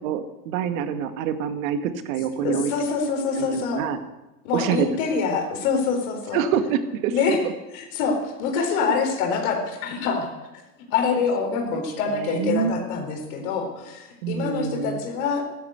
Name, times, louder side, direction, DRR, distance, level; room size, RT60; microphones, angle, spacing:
voice 1, 0.0-2.7 3.4-4.0 4.5-5.0 6.3-7.5 8.8-8.9 11.7-11.8 12.1-12.8 14.2-15.0, right 8 dB, 55° right, 9 dB, 2.0 m, -26 dB
voice 2, 2.4-3.9 4.4-6.4 7.1-7.4 7.7-10.3 10.9-15.4, left 5 dB, 55° left, 2 dB, 4.2 m, -25 dB
14.5 x 12.5 x 8.0 m, 1.0 s
hypercardioid pair, 110°, 50 cm